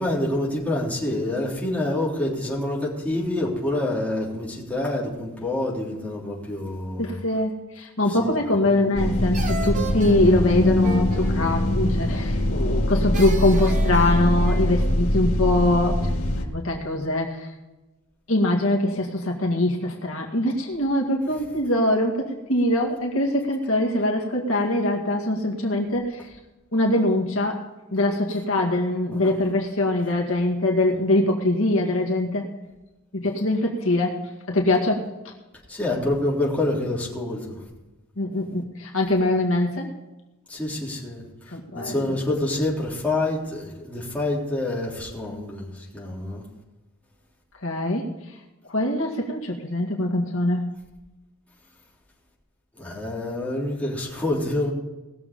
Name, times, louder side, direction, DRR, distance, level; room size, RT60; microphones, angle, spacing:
voice 1, 0.0-7.2 8.1-8.9 29.1-29.3 35.7-37.6 40.5-46.4 52.8-54.7, left 1 dB, 5° left, -6 dB, 3.6 m, -27 dB
voice 2, 7.0-16.0 16.4-17.5 18.3-26.3 26.7-27.6 27.9-32.5 33.1-34.2 34.5-35.1 38.2-39.9 41.5-42.1 47.6-48.1 48.7-50.7, left 1 dB, 70° left, 0 dB, 2.1 m, -23 dB
sound 1, 8.5-9.0 9.3-12.4 13.1-15.0, right 2 dB, 35° right, 1.3 m, -36 dB
sound 2, 8.9-16.4, left 1 dB, 85° left, 2.1 m, -23 dB
19.5 x 7.1 x 5.3 m, 1.1 s
head